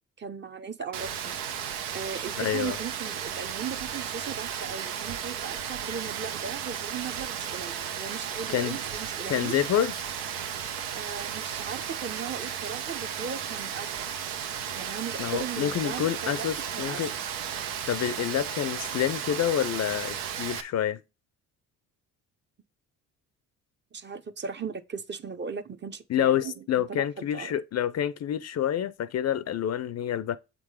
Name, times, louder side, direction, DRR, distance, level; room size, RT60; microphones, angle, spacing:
voice 1, 0.2-9.6 10.9-14.1 14.7-16.5 16.7-17.0 23.9-26.6 26.9-27.6, right 6 dB, 30° right, 0.7 m, -38 dB
Rain, 0.9-20.6, right 8 dB, 85° right, 0.9 m, -34 dB
voice 2, 2.4-2.8 8.5-8.8 9.3-10.0 15.2-17.1 17.7-21.0 26.1-30.4, left 10 dB, 45° left, 0.5 m, -28 dB
7.4 x 3.7 x 4.8 m
supercardioid pair, 80°, 36 cm